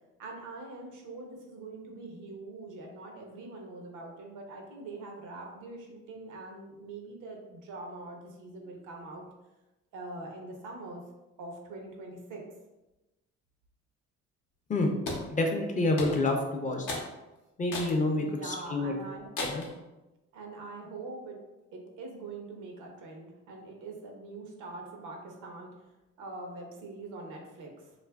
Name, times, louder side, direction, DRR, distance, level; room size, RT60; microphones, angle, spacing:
voice 1, 0.2-9.2 9.9-11.0 11.4-12.4 18.1-19.3 20.3-21.4 21.7-27.9, right 2 dB, 85° right, 1 dB, 0.6 m, -43 dB
sound 1, 15.1-15.3 16.0-16.4 16.9-17.1 17.7-18.0 18.5-18.6 19.4-19.7, left 3 dB, 80° left, 0.6 m, -35 dB
voice 2, 15.3-17.0 17.6-18.9 19.4-19.6, left 2 dB, 25° left, 2 dB, 0.4 m, -28 dB
2.7 x 2.4 x 2.2 m, 1.0 s
cardioid pair, 90°, 30 cm